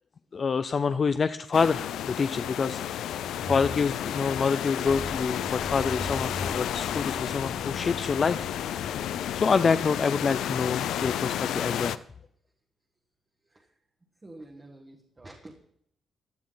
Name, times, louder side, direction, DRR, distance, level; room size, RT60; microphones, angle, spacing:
voice 1, 0.3-3.2 3.4-8.5 9.3-12.0, left 5 dB, 30° left, 11 dB, 0.4 m, -27 dB
sound 1, 1.5-12.0, left 10 dB, 90° left, 0.5 m, -32 dB
sound 2, 3.3-9.5, left 1 dB, ahead, 1.7 m, -40 dB
voice 2, 13.4-13.8 14.2-15.6, right 2 dB, 15° right, 0 dB, 1.2 m, -48 dB
16.0 x 11.5 x 3.9 m, 0.67 s
cardioid pair, 180°, 0 cm